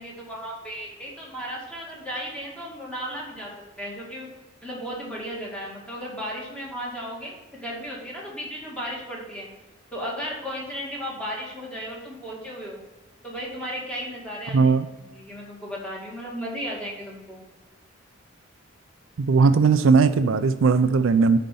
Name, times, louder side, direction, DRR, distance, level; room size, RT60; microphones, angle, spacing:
voice 1, 0.0-3.5 3.8-4.3 4.6-9.5 9.9-12.8 13.2-14.8 15.1-17.4, equal, 5° left, -4 dB, 2.1 m, -35 dB
voice 2, 14.5-14.9 19.2-21.4, right 4 dB, 75° right, 11 dB, 0.4 m, -18 dB
9.3 x 4.4 x 5.4 m, 1.1 s
head